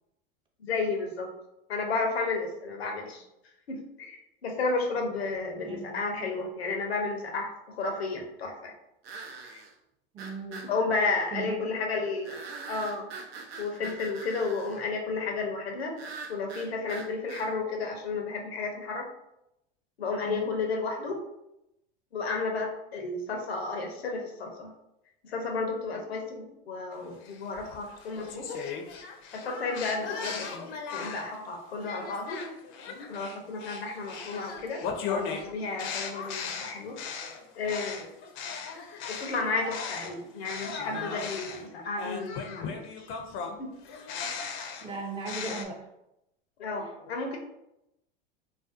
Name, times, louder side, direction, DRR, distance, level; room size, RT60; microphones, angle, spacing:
voice 1, 0.6-1.3 1.7-3.2 3.7-8.7 9.5-9.6 10.7-12.4 12.7-13.1 13.6-16.0 16.3-19.1 20.0-21.2 22.1-24.7 25.2-28.6 29.3-32.5 33.1-34.8 35.1-37.0 37.6-38.1 39.1-43.1 43.6-43.7 44.2-44.4 46.6-47.4, left 3 dB, 90° left, 3 dB, 0.6 m, -32 dB
sound 1, 5.4-5.5 9.0-9.7 10.2-10.7 12.2-14.8 16.0-17.5, right 4 dB, 80° right, 0.5 m, -43 dB
voice 2, 5.6-6.0 10.1-10.6 11.3-11.7 13.8-14.1 20.3-20.5 44.8-45.9 46.8-46.9, right 3 dB, 15° right, 1 dB, 0.4 m, -38 dB
sound 2, 27.2-31.4 31.8-40.1 40.4-45.6, left 5 dB, 45° left, 0.4 m, -37 dB
2.5 x 2.2 x 2.4 m, 0.86 s
hypercardioid pair, 90°, 30 cm